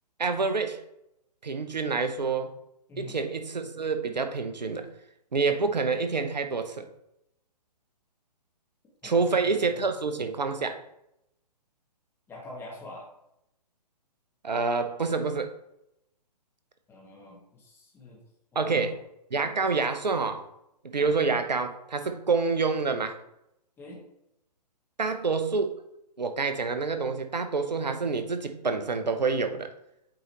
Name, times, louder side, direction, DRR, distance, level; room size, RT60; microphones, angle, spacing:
voice 1, 0.2-0.8 1.4-2.5 3.0-4.9 5.3-6.9 9.0-10.8 14.4-15.5 18.5-19.0 19.3-20.4 20.9-23.2 25.0-25.7 26.2-29.7, right 4 dB, 80° right, 8 dB, 0.8 m, -27 dB
voice 2, 9.0-9.6 12.3-13.1 16.9-18.2 18.5-18.9 21.0-21.1 23.8-24.0, left 2 dB, 10° left, -3 dB, 1.7 m, -45 dB
8.7 x 3.9 x 3.1 m, 0.83 s
figure-of-eight pair, 130°, 21 cm